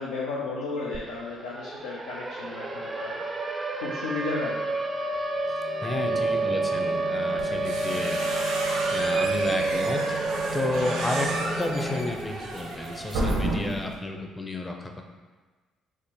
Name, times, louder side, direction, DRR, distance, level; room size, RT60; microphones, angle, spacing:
voice 1, 0.0-3.2 3.8-4.7 5.9-6.2, left 3 dB, 85° left, -6 dB, 0.4 m, -33 dB
Siren, 0.9-1.0 1.3-13.4, right 3 dB, 30° right, 0.4 m, -30 dB
sound 1, 5.4-12.1, left 1 dB, 45° left, 1.3 m, -36 dB
voice 2, 5.5-8.2 8.9-10.3 10.5-15.0, left 2 dB, 20° left, 3 dB, 0.6 m, -32 dB
sound 2, 7.4-13.9, right 2 dB, 80° right, 0.6 m, -32 dB
3.5 x 2.1 x 4.4 m, 1.3 s
hypercardioid pair, 55°, 0 cm